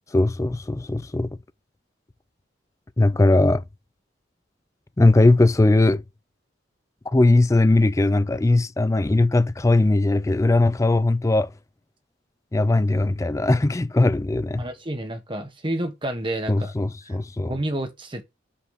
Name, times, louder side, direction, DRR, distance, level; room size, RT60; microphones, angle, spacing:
voice 1, 0.1-1.3 3.0-3.6 5.0-6.0 7.1-11.5 12.5-14.6 16.5-17.5, left 2 dB, 15° left, 0.4 m, -19 dB
voice 2, 14.6-16.7 17.0-17.2 17.4-18.2, right 1 dB, 25° right, 1.4 m, -29 dB
5.8 x 4.8 x 5.0 m
head